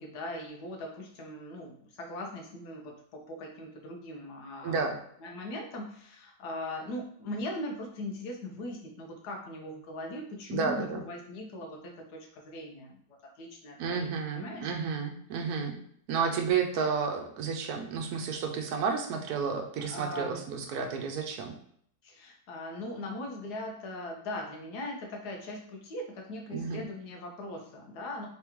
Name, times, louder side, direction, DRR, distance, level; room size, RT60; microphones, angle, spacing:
voice 1, 0.0-13.0 13.4-14.7 19.8-20.4 22.0-28.3, left 1 dB, 85° left, 2 dB, 1.4 m, -40 dB
voice 2, 4.6-5.0 10.5-11.0 13.8-15.8 16.1-21.6 26.5-26.8, right 5 dB, 75° right, 4 dB, 1.1 m, -31 dB
3.8 x 3.5 x 3.0 m, 0.66 s
omnidirectional pair, 1.7 m